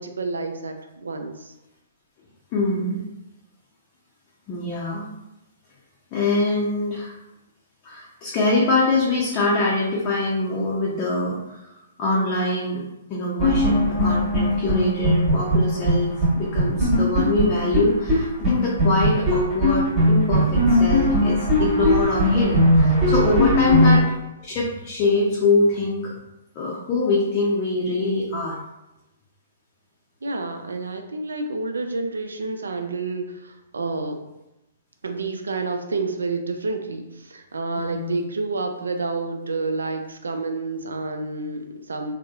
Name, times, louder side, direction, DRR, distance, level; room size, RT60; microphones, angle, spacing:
voice 1, 0.0-1.5 23.5-23.9 30.2-34.2 35.0-42.1, right 3 dB, 80° right, 5 dB, 0.3 m, -29 dB
voice 2, 2.5-3.0 4.5-5.1 6.1-7.1 7.8-11.7 12.0-12.8 13.1-24.0 24.4-26.1 26.6-28.6 37.8-38.2, left 2 dB, 35° left, -5 dB, 0.5 m, -24 dB
sound 1, 13.4-15.9 16.2-16.3 16.6-18.2 18.4-18.5 18.8-24.0, equal, 20° right, 1.1 m, -19 dB
2.7 x 2.0 x 2.3 m, 0.94 s
hypercardioid pair, 125°, 0 cm